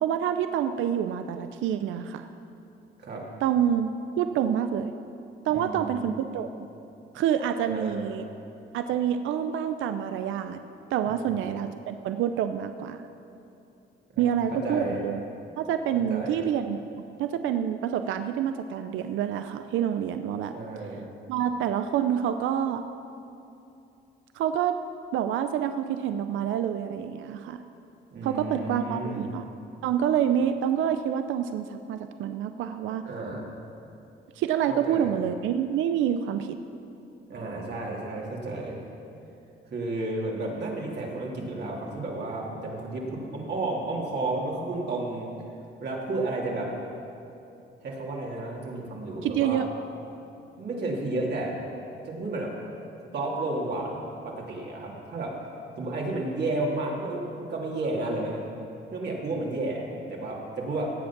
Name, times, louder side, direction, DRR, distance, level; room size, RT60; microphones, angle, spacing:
voice 1, 0.0-2.3 3.4-3.9 4.2-4.9 5.5-6.5 7.1-8.3 8.7-10.6 10.9-13.0 14.2-15.2 15.6-16.8 17.2-20.5 21.3-22.8 24.4-24.8 25.1-27.6 28.2-29.5 29.8-33.0 34.4-36.6 49.2-49.7, right 9 dB, 85° right, 9 dB, 0.5 m, -27 dB
voice 2, 5.5-6.1 7.7-8.0 11.1-11.4 14.1-14.2 14.5-15.0 15.9-16.4 20.5-21.0 28.1-29.2 33.0-33.5 34.7-35.2 37.3-38.8 39.7-45.3 45.8-46.7 47.8-49.6 50.6-51.6 52.0-52.5 53.1-53.9 54.2-55.4 55.8-58.5 58.9-59.8 60.1-60.9, right 2 dB, 55° right, -3 dB, 2.8 m, -32 dB
17.0 x 7.9 x 5.9 m, 2.8 s
cardioid pair, 90°, 20 cm